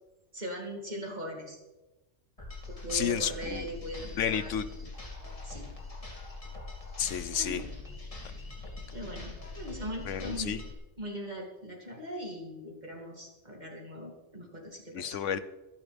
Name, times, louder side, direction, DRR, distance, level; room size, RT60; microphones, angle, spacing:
voice 1, 0.3-1.6 2.7-4.5 5.4-5.7 7.3-7.7 8.9-10.6 11.0-15.2, equal, 35° right, -1 dB, 2.9 m, -40 dB
sound 1, 2.4-10.7, left 3 dB, 30° left, 2.7 m, -42 dB
voice 2, 2.9-3.7 4.2-4.7 7.0-7.6 10.1-10.6 14.9-15.4, left 8 dB, 90° left, 13 dB, 1.2 m, -31 dB
24.5 x 11.0 x 3.5 m, 1.1 s
omnidirectional pair, 1.2 m